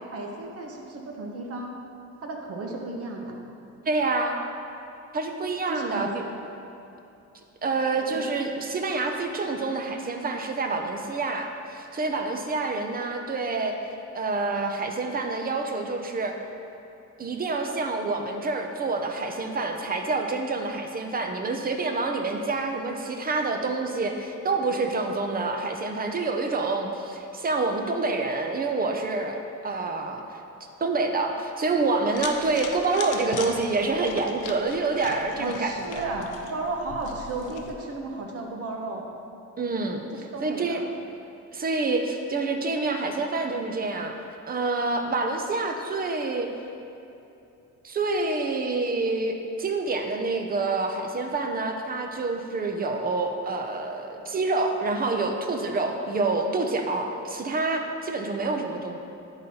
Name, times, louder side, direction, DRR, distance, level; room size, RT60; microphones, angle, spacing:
voice 1, 0.1-1.7 2.2-3.4 5.7-6.1 8.0-8.2 35.4-39.0 40.3-40.9, right 2 dB, 50° right, 1 dB, 1.0 m, -34 dB
voice 2, 3.9-4.4 5.1-6.1 7.6-13.8 14.1-16.4 17.2-29.4 29.6-30.2 30.8-36.1 39.6-40.0 40.4-40.8 41.5-44.2 44.4-46.5 47.8-59.0, right 3 dB, 30° right, 4 dB, 0.6 m, -27 dB
sound 1, 32.1-37.7, left 5 dB, 80° left, 0.7 m, -39 dB
10.5 x 4.0 x 4.2 m, 2.8 s
cardioid pair, 130°, 31 cm